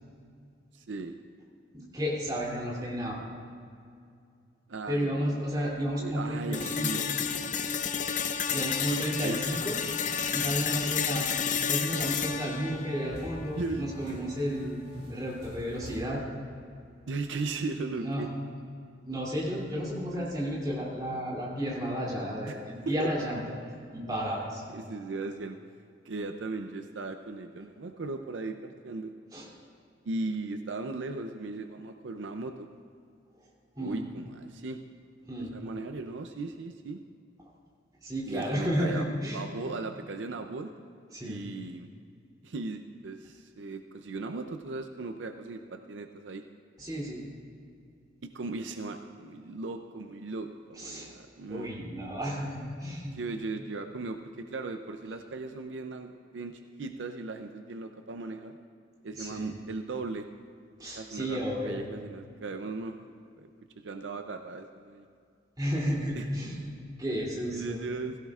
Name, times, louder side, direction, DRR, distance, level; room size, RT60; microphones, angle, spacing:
voice 1, 0.7-1.2 4.7-5.7 6.0-7.5 9.2-9.6 13.5-13.9 17.1-18.3 20.1-20.3 22.5-22.6 22.9-23.1 24.7-25.6 26.0-29.1 30.0-32.7 33.8-34.8 35.4-37.0 38.3-39.1 39.3-40.7 41.2-41.9 42.4-46.4 48.2-51.7 53.1-58.6 59.0-60.3 61.0-61.4 61.7-63.0 63.4-63.5 63.8-65.1 66.1-66.3 67.5-68.2, right 3 dB, 80° right, 7 dB, 0.5 m, -37 dB
voice 2, 1.7-3.2 4.9-7.0 8.5-9.7 10.2-14.8 15.1-16.2 18.0-18.3 19.0-23.4 23.9-24.6 29.3-29.5 33.8-34.0 35.2-35.5 38.0-39.4 41.1-41.4 46.8-47.2 50.8-51.1 51.5-53.2 59.1-59.5 60.8-61.8 65.6-67.8, equal, 20° right, -5 dB, 2.9 m, -32 dB
sound 1, 6.5-14.5, left 7 dB, 45° left, 0.6 m, -31 dB
sound 2, 10.1-10.9 11.4-11.7 12.2-16.0, equal, 40° right, 3.6 m, -46 dB
16.5 x 16.0 x 2.4 m, 2.4 s
head